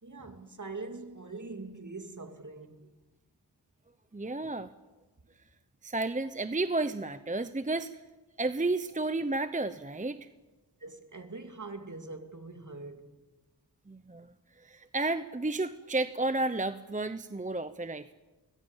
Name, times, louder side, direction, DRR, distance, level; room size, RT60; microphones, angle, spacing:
voice 1, 0.0-2.9 10.8-13.2, right 3 dB, 45° right, 2.7 m, -43 dB
voice 2, 4.1-4.7 5.8-7.9 8.4-10.2 13.9-14.3 14.6-18.1, right 2 dB, 20° right, 0.8 m, -32 dB
24.5 x 20.5 x 7.3 m
wide cardioid pair, 70°, 40 cm